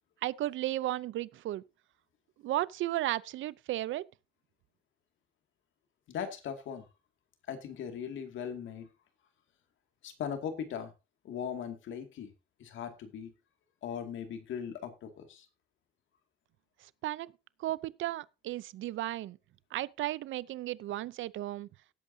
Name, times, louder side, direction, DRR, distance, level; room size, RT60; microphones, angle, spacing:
voice 1, 0.2-1.6 2.4-4.1 17.0-17.3 17.6-19.4 19.7-21.7, right 15 dB, 80° right, 0.6 m, -34 dB
voice 2, 6.1-6.9 7.5-8.9 10.0-10.9 11.2-12.3 12.6-13.3 13.8-15.5, left 8 dB, 75° left, 2.3 m, -39 dB
18.0 x 8.2 x 2.7 m
cardioid pair, 90°, 20 cm